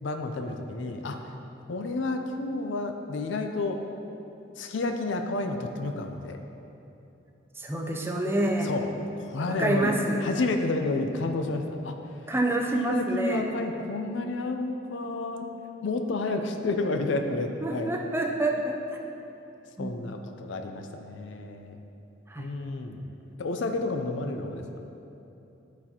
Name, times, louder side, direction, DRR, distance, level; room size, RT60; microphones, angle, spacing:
voice 1, 0.0-1.3 1.7-3.8 4.6-6.4 8.6-8.9 9.2-9.9 10.2-12.0 12.7-15.5 15.8-17.9 19.8-21.8 22.4-23.1 23.4-24.6, left 2 dB, 65° left, 5 dB, 0.4 m, -30 dB
voice 2, 7.6-8.7 9.5-10.2 12.3-13.5 17.6-18.8 19.8-20.0 22.3-22.5, right 1 dB, 10° right, 1 dB, 0.5 m, -27 dB
12.0 x 4.1 x 2.9 m, 2.9 s
head